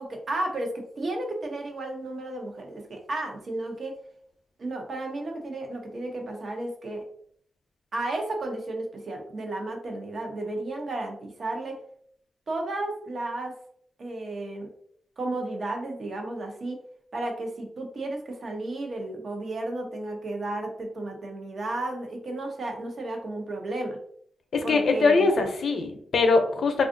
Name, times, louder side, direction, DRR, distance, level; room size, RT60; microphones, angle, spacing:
voice 1, 0.0-3.9 4.6-7.0 7.9-11.8 12.5-13.5 14.0-14.7 15.2-16.8 17.1-24.0 24.6-25.3, right 2 dB, 55° right, 2 dB, 0.7 m, -33 dB
voice 2, 24.5-26.9, left 3 dB, 75° left, 5 dB, 0.5 m, -22 dB
3.5 x 2.4 x 2.5 m, 0.64 s
wide cardioid pair, 115°, 0 cm